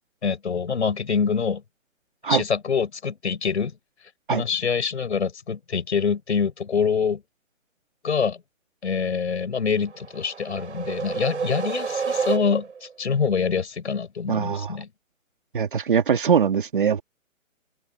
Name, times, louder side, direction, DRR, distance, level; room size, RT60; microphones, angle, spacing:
voice 1, 0.2-1.6 2.3-3.8 4.3-7.2 8.0-8.4 8.8-14.9, left 6 dB, 55° left, 7.2 m, -25 dB
sound 1, 9.8-12.9, right 6 dB, 60° right, 7.9 m, -29 dB
voice 2, 14.3-14.8 15.5-17.0, right 7 dB, 40° right, 2.2 m, -22 dB
hypercardioid pair, 180°, 40 cm